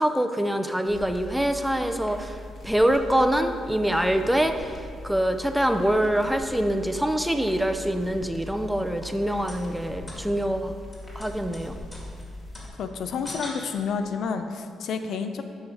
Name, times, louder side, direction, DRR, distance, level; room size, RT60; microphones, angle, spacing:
voice 1, 0.0-10.7 11.2-11.8, right 1 dB, 5° right, 7 dB, 0.5 m, -25 dB
sound 1, 0.9-12.7, left 1 dB, 35° left, 1.9 m, -41 dB
sound 2, 8.8-14.2, left 1 dB, 20° left, 2.1 m, -44 dB
voice 2, 12.8-15.4, left 5 dB, 70° left, 8 dB, 0.5 m, -30 dB
7.9 x 5.6 x 4.8 m, 2.2 s
cardioid pair, 90°, 0 cm